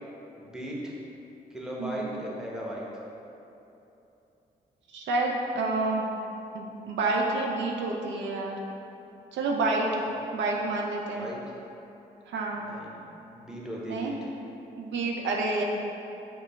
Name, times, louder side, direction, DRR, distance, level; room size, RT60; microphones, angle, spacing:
voice 1, 0.4-0.9 1.5-2.9 10.1-10.2 11.2-11.4 12.6-12.9 13.3-14.3, equal, 5° right, -4 dB, 0.9 m, -37 dB
voice 2, 4.9-6.1 6.5-8.6 9.3-9.9 10.3-11.3 12.3-12.7 13.9-14.1 14.8-15.6, right 3 dB, 70° right, -1 dB, 0.4 m, -28 dB
5.0 x 2.2 x 3.0 m, 2.9 s
hypercardioid pair, 40°, 20 cm